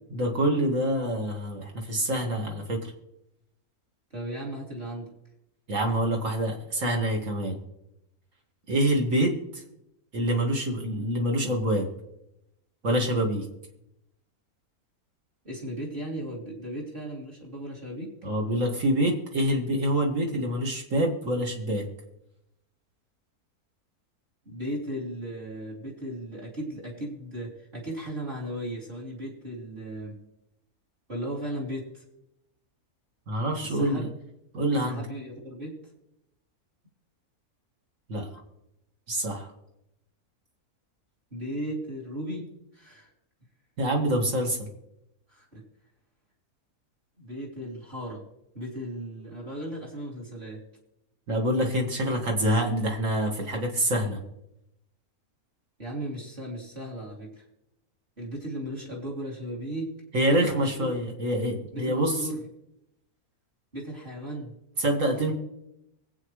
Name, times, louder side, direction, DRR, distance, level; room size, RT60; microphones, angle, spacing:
voice 1, 0.1-2.8 5.7-7.6 8.7-9.3 10.1-11.9 12.8-13.4 18.2-21.9 33.3-34.1 34.5-35.0 38.1-38.3 39.1-39.5 43.8-44.7 51.3-54.2 60.1-62.2 64.8-65.3, right 1 dB, 60° right, 1 dB, 2.4 m, -26 dB
voice 2, 4.1-5.1 15.4-18.1 24.4-30.2 31.1-32.0 33.6-34.1 34.8-35.8 41.3-43.1 45.3-45.6 47.2-48.2 48.5-50.6 55.8-57.4 58.2-59.9 60.3-60.9 61.7-62.4 63.7-64.5, right 1 dB, 35° right, -3 dB, 3.1 m, -36 dB
24.0 x 8.5 x 3.2 m, 0.84 s
omnidirectional pair, 1.6 m